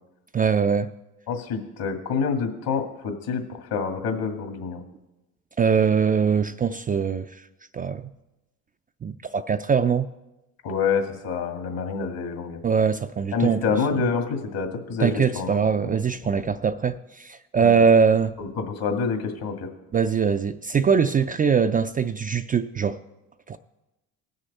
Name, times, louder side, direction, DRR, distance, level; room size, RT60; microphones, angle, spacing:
voice 1, 0.3-0.9 5.6-7.3 7.7-8.0 9.0-10.1 12.6-13.6 13.9-14.0 15.0-18.3 19.9-23.0 23.5-23.6, right 6 dB, 25° right, 0.4 m, -22 dB
voice 2, 1.3-4.8 10.6-12.6 13.3-15.9 16.4-16.5 17.6-17.8 18.4-19.7, left 5 dB, 60° left, 2.2 m, -27 dB
19.0 x 6.6 x 4.2 m
hypercardioid pair, 65°, 39 cm